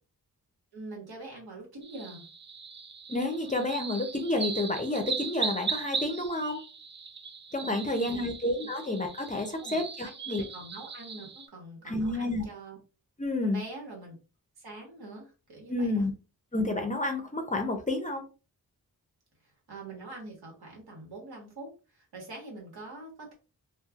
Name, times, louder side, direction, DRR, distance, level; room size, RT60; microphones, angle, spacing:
voice 1, 0.7-2.2 7.6-8.3 8.6-8.7 9.5-12.8 13.4-14.1 14.6-16.1 19.7-23.3, right 2 dB, 85° right, -1 dB, 1.4 m, -44 dB
sound 1, 1.8-11.5, right 5 dB, 30° right, 0.4 m, -38 dB
voice 2, 3.1-6.6 7.5-10.4 11.9-12.5 13.2-13.6 15.7-16.1 16.5-18.2, left 2 dB, 20° left, 5 dB, 0.5 m, -30 dB
3.1 x 2.4 x 2.3 m, 0.32 s
wide cardioid pair, 100°, 37 cm